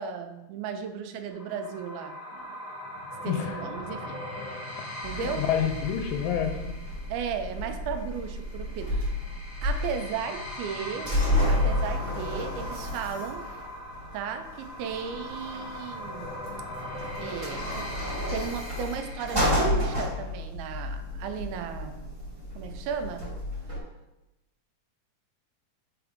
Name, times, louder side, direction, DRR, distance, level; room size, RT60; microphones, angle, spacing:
voice 1, 0.0-2.5 3.2-4.2 5.0-5.5 7.1-9.1 9.6-11.2 11.5-13.5 14.1-16.3 17.2-17.9 18.2-22.1 22.6-23.3, right 7 dB, 85° right, 6 dB, 2.5 m, -35 dB
sound 1, 1.3-20.0, left 1 dB, 35° left, 1.9 m, -40 dB
voice 2, 3.3-3.6 5.2-6.8, left 9 dB, 80° left, 4 dB, 2.1 m, -28 dB
sound 2, 5.0-23.8, left 1 dB, 20° right, 2.0 m, -32 dB
7.0 x 4.7 x 3.5 m, 0.97 s
omnidirectional pair, 4.3 m